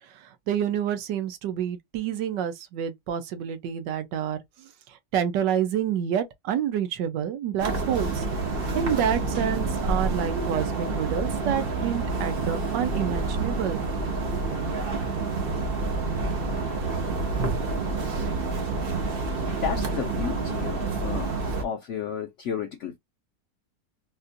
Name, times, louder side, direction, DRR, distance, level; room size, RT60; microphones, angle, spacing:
voice 1, 0.0-8.3 8.7-13.8, right 9 dB, 90° right, 1.4 m, -28 dB
sound 1, 7.6-21.6, right 3 dB, 45° right, 0.8 m, -28 dB
voice 2, 19.5-21.3 21.6-23.0, left 8 dB, 80° left, 0.6 m, -32 dB
4.1 x 2.5 x 2.5 m
omnidirectional pair, 1.8 m